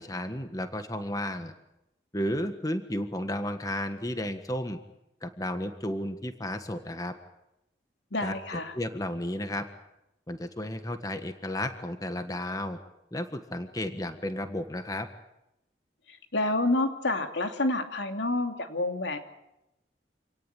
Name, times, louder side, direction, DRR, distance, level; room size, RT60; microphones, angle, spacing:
voice 1, 0.0-1.5 2.1-4.8 5.2-7.1 8.2-9.7 10.3-12.8 13.1-15.1, left 1 dB, 20° left, 8 dB, 1.5 m, -33 dB
voice 2, 8.1-8.7 16.3-19.2, left 2 dB, 85° left, 5 dB, 2.9 m, -28 dB
27.5 x 18.5 x 9.1 m, 0.89 s
head